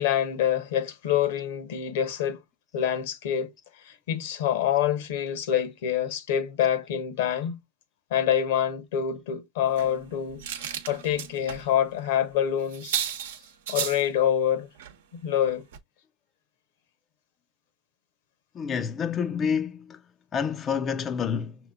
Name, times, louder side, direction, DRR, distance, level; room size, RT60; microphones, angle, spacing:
voice 1, 0.0-2.4 2.7-3.5 3.8-7.6 8.1-13.0 13.7-14.7 15.1-15.6, left 10 dB, 70° left, 1.0 m, -26 dB
sound 1, 9.7-11.6 12.0-12.1 12.4-12.5 12.7-14.0 14.8-15.0 15.3-15.5 15.7-15.8, right 9 dB, 75° right, 0.8 m, -34 dB
voice 2, 18.5-20.0 20.3-21.6, left 7 dB, 30° left, 0.4 m, -28 dB
5.9 x 2.9 x 2.4 m
hypercardioid pair, 115°, 0 cm